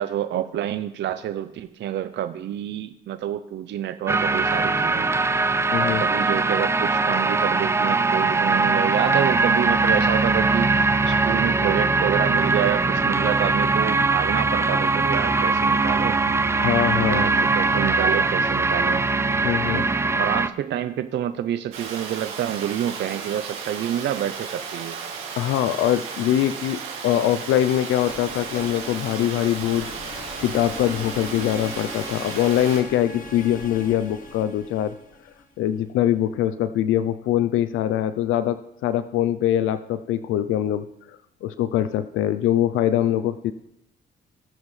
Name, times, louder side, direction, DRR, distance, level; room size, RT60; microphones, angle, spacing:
voice 1, 0.0-5.1 5.8-16.3 16.9-19.0 19.7-19.9 20.2-25.0, right 11 dB, 65° right, 11 dB, 0.5 m, -28 dB
sound 1, 4.1-20.5, right 3 dB, 15° right, 0.4 m, -21 dB
voice 2, 5.7-6.0 16.5-17.3 19.4-19.9 25.4-34.9 35.6-40.9 41.4-43.5, left 11 dB, 85° left, 13 dB, 0.5 m, -23 dB
Water, 21.7-32.8, right 6 dB, 85° right, 2.2 m, -35 dB
sound 2, 28.0-35.9, left 3 dB, 45° left, 1.6 m, -40 dB
17.5 x 7.4 x 3.2 m, 0.84 s
cardioid pair, 90°, 20 cm